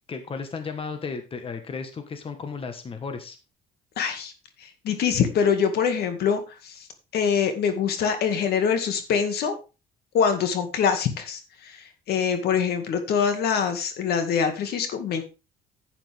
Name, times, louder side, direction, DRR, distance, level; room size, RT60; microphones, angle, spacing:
voice 1, 0.1-3.4, left 5 dB, 35° left, 8 dB, 1.5 m, -34 dB
voice 2, 4.0-4.3 4.6-6.8 7.1-9.6 10.1-15.2, left 7 dB, 70° left, 8 dB, 2.1 m, -24 dB
10.5 x 8.9 x 3.5 m, 0.30 s
cardioid pair, 110°, 17 cm